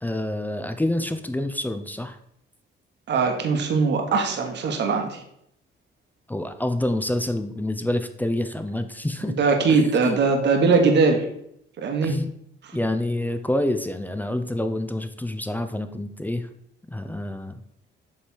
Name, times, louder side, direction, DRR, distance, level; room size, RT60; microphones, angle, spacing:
voice 1, 0.0-2.2 6.3-9.3 9.7-10.2 12.0-12.3 12.7-16.5 16.9-17.6, left 1 dB, 10° left, 8 dB, 0.5 m, -27 dB
voice 2, 3.1-5.2 9.4-11.3 11.8-12.1, right 4 dB, 60° right, 3 dB, 1.1 m, -21 dB
7.2 x 3.3 x 4.5 m, 0.73 s
cardioid pair, 90°, 20 cm